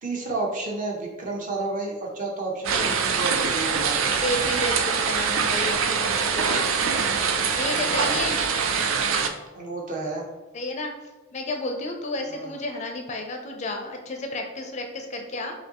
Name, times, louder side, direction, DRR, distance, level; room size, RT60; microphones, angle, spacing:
voice 1, 0.0-4.0 7.8-8.3 9.5-10.3 12.3-12.6, right 2 dB, 40° right, -1 dB, 0.8 m, -31 dB
sound 1, 2.6-9.3, right 6 dB, 80° right, 0.4 m, -24 dB
voice 2, 4.2-6.8 7.5-8.4 10.5-10.9 11.3-15.5, left 2 dB, 35° left, 3 dB, 0.4 m, -31 dB
5.2 x 2.7 x 2.9 m, 1.2 s
head